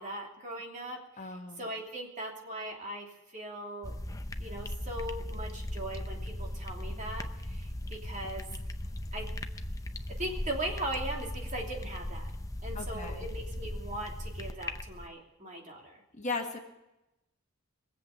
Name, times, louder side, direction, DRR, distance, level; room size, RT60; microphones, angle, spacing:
voice 1, 0.0-3.1 3.3-4.0 4.4-8.5 9.1-9.2 10.2-12.3 12.6-16.0, right 1 dB, 35° right, 0 dB, 3.0 m, -39 dB
voice 2, 1.2-1.6 12.7-13.3 16.2-16.6, left 3 dB, 35° left, 3 dB, 1.6 m, -37 dB
sound 1, 3.8-15.1, left 1 dB, 15° left, 0.7 m, -38 dB
22.5 x 8.1 x 7.1 m, 0.92 s
head